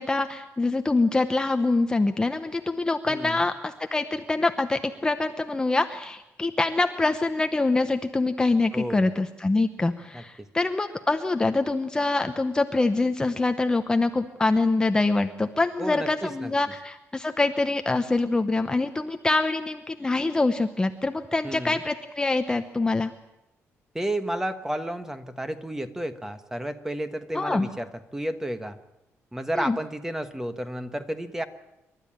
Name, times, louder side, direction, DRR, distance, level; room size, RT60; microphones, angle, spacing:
voice 1, 0.0-23.1 27.3-27.7 29.6-29.8, left 3 dB, 15° left, 7 dB, 0.8 m, -25 dB
voice 2, 3.1-3.4 8.7-9.1 10.1-10.2 15.8-16.5 21.4-21.8 23.9-28.8 29.3-31.4, right 1 dB, 10° right, 9 dB, 1.3 m, -32 dB
28.0 x 12.5 x 8.8 m, 0.92 s
cardioid pair, 135°, 5 cm